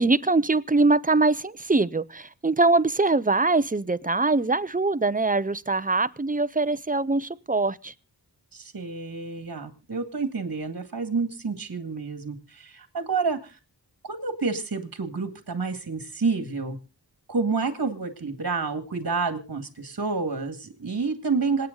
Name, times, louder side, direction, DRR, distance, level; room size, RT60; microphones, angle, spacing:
voice 1, 0.0-7.9, right 3 dB, 20° right, 0.7 m, -23 dB
voice 2, 8.5-13.6 14.0-16.8 17.3-21.7, right 4 dB, 55° right, 2.1 m, -29 dB
26.5 x 8.9 x 3.9 m
wide cardioid pair, 60°, 41 cm